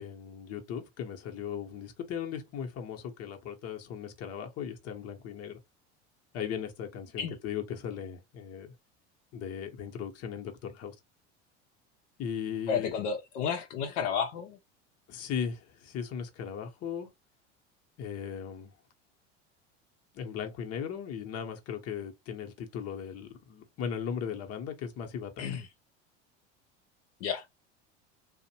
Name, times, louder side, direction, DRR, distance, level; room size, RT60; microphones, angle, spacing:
voice 1, 0.0-5.6 6.3-8.7 9.3-10.9 12.2-12.9 15.1-17.1 18.0-18.7 20.1-25.4, left 7 dB, 45° left, 0.8 m, -37 dB
voice 2, 12.7-14.6 25.4-25.7 27.2-27.5, left 7 dB, 70° left, 0.6 m, -31 dB
2.6 x 2.1 x 2.8 m
hypercardioid pair, 85°, 36 cm